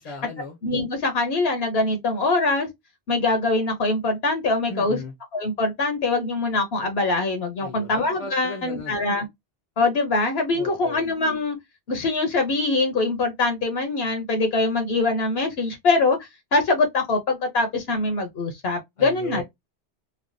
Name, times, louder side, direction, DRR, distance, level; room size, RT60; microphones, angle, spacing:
voice 1, 0.0-0.6 4.7-5.1 7.6-9.0 10.5-11.0 19.0-19.4, left 3 dB, 40° left, 0.6 m, -36 dB
voice 2, 0.6-2.7 3.1-5.0 5.3-9.3 9.8-11.6 11.9-19.4, left 3 dB, 70° left, 0.9 m, -23 dB
3.3 x 2.1 x 2.5 m
omnidirectional pair, 1.1 m